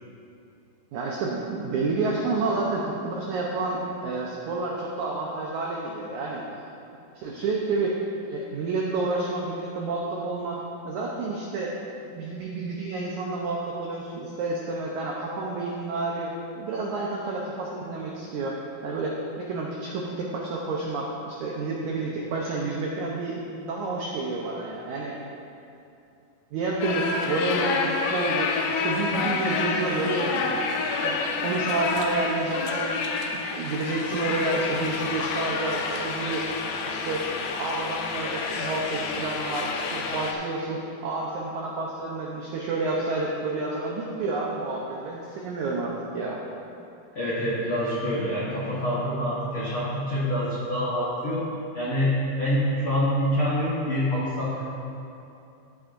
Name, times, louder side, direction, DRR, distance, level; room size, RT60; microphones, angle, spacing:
voice 1, 0.9-6.4 7.1-8.0 8.2-10.6 10.8-11.8 12.1-25.1 26.5-28.5 28.8-30.5 31.0-33.0 33.3-36.4 36.8-46.4, right 3 dB, 85° right, -2 dB, 1.7 m, -29 dB
sound 1, 26.8-40.3, left 4 dB, 90° left, 2.7 m, -29 dB
voice 2, 47.1-51.5 51.7-54.7, equal, 70° left, -9 dB, 1.2 m, -26 dB
14.5 x 8.3 x 2.6 m, 2.7 s
omnidirectional pair, 4.5 m